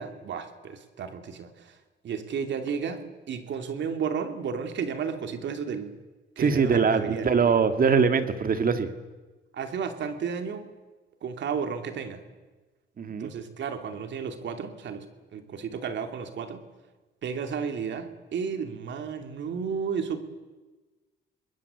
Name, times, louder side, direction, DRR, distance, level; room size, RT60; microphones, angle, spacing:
voice 1, 0.0-1.5 2.0-5.9 6.4-7.4 9.5-10.7 11.2-12.2 13.2-15.1 15.3-16.6 17.2-20.2, right 6 dB, 65° right, 7 dB, 2.7 m, -33 dB
voice 2, 6.4-8.9 13.0-13.3, right 5 dB, 45° right, 9 dB, 2.2 m, -22 dB
26.5 x 21.0 x 8.2 m, 1.2 s
cardioid pair, 90°, 20 cm